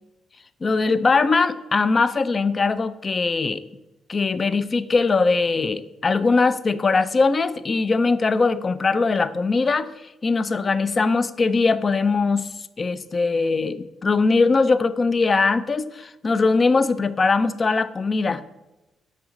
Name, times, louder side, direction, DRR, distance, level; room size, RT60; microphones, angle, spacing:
voice 1, 0.6-3.6 4.1-9.9 10.2-12.5 12.8-18.4, left 4 dB, 35° left, 14 dB, 0.3 m, -21 dB
5.9 x 4.3 x 3.7 m, 1.0 s
cardioid pair, 90°, 0 cm